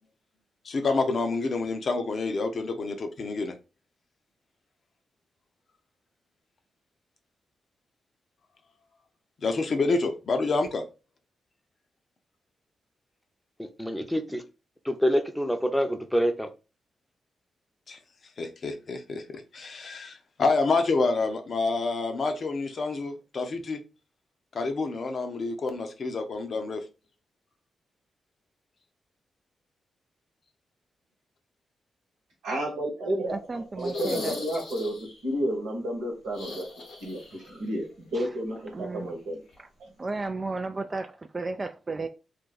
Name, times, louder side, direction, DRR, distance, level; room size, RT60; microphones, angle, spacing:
voice 1, 0.6-3.6 9.4-10.8 17.9-18.0 18.4-23.8 24.5-26.8, left 3 dB, 60° left, 0.6 m, -28 dB
voice 2, 13.6-14.4 14.8-16.5, equal, 5° left, 0.7 m, -26 dB
voice 3, 32.4-34.9 35.2-36.6 37.0-39.4 39.8-39.9, right 1 dB, 80° right, 1.0 m, -31 dB
voice 4, 33.3-34.3 38.1-38.3 38.7-39.2 39.6-39.7 40.0-42.1, right 3 dB, 40° right, 0.3 m, -34 dB
sound 1, 33.8-35.2 36.3-37.5 37.8-37.9 39.5-39.6, left 3 dB, 80° left, 0.9 m, -37 dB
2.5 x 2.2 x 3.9 m
hypercardioid pair, 40°, 0 cm